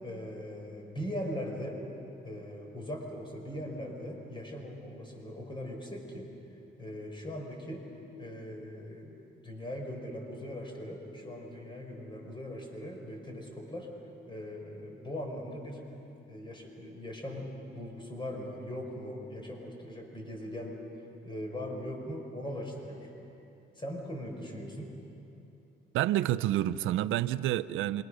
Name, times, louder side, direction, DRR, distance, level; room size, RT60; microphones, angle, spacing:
voice 1, 0.0-1.8 2.2-6.3 6.8-7.8 8.2-9.2 9.4-13.9 14.3-15.8 16.3-20.8 21.2-23.1 23.8-24.9, equal, 25° left, 1 dB, 5.3 m, -40 dB
voice 2, 25.9-28.0, right 13 dB, 85° right, 14 dB, 0.5 m, -28 dB
27.5 x 24.0 x 6.4 m, 2.8 s
cardioid pair, 90°, 20 cm